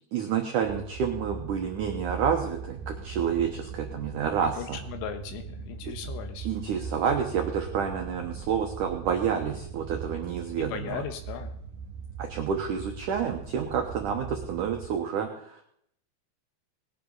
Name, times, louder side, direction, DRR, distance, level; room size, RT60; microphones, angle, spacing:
voice 1, 0.1-4.8 5.9-6.0 6.4-11.0 12.2-15.6, right 7 dB, 90° right, 3 dB, 1.8 m, -29 dB
sound 1, 0.6-14.9, right 5 dB, 70° right, 3.1 m, -40 dB
voice 2, 4.4-6.5 10.6-11.5, left 8 dB, 85° left, 8 dB, 3.8 m, -37 dB
19.0 x 10.0 x 4.0 m, 0.70 s
omnidirectional pair, 5.3 m